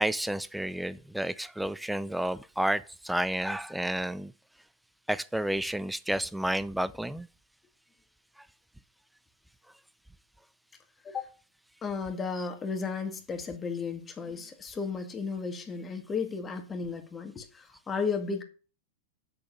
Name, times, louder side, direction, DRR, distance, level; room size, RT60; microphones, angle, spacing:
voice 1, 0.0-4.3 5.1-7.3 12.4-12.5, right 1 dB, 5° right, 0.6 m, -31 dB
voice 2, 11.8-18.4, left 5 dB, 20° left, 1.9 m, -34 dB
7.6 x 6.7 x 6.5 m
hypercardioid pair, 100°, 0 cm